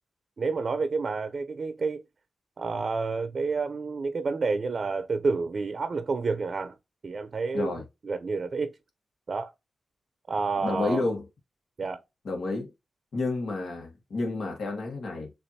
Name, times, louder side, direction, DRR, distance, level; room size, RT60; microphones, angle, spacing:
voice 1, 0.4-2.0 2.6-6.8 7.0-8.7 9.3-9.5 10.3-11.0 11.8-12.0, right 4 dB, 60° right, 0.6 m, -29 dB
voice 2, 7.5-7.8 10.6-11.2 12.2-12.7 13.1-15.3, left 3 dB, 70° left, 1.4 m, -30 dB
6.7 x 2.6 x 2.8 m
supercardioid pair, 45°, 0 cm